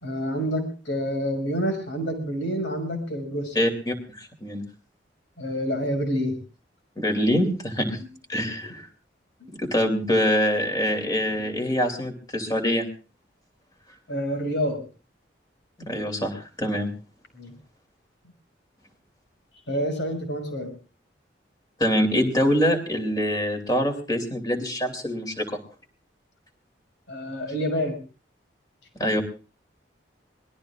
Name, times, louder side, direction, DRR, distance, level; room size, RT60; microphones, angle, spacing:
voice 1, 0.0-3.6 5.4-6.4 9.4-9.5 14.1-14.8 17.4-17.5 19.7-20.7 27.1-28.0, equal, 80° left, 5 dB, 5.7 m, -28 dB
voice 2, 3.5-4.6 7.0-8.0 8.3-8.9 9.6-12.9 15.8-16.9 21.8-25.6 29.0-29.2, equal, 20° left, 5 dB, 2.9 m, -24 dB
25.0 x 20.0 x 2.4 m, 0.36 s
head